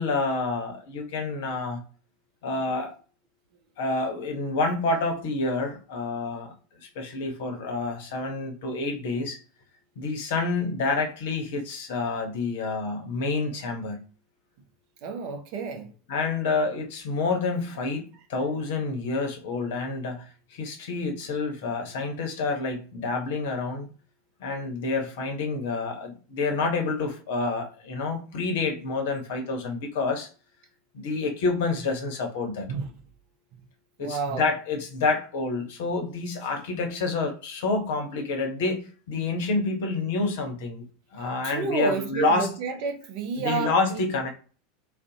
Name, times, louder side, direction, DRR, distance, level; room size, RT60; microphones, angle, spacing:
voice 1, 0.0-1.8 2.4-2.9 3.8-6.5 7.0-9.4 10.0-14.0 16.1-20.2 20.5-23.9 24.4-30.3 30.9-32.7 34.0-40.8 41.1-42.5 43.4-44.3, left 3 dB, 60° left, 0.7 m, -28 dB
voice 2, 15.0-15.9 32.7-32.9 34.0-34.5 41.4-44.0, right 5 dB, 50° right, 0.5 m, -30 dB
2.5 x 2.0 x 2.6 m
figure-of-eight pair, 80°, 0 cm